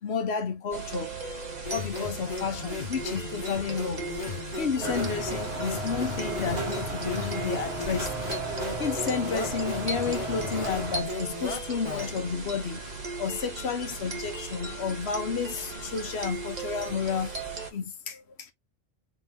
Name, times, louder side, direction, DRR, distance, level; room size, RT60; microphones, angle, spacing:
voice 1, 0.0-8.2 8.7-17.3 17.7-18.5, left 6 dB, 85° left, 1.1 m, -32 dB
sound 1, 0.7-17.7, right 4 dB, 40° right, 1.3 m, -37 dB
sound 2, 1.7-12.3, left 5 dB, 40° left, 2.0 m, -37 dB
sound 3, 4.8-11.0, right 2 dB, 85° right, 1.8 m, -35 dB
3.8 x 3.8 x 2.7 m
omnidirectional pair, 1.1 m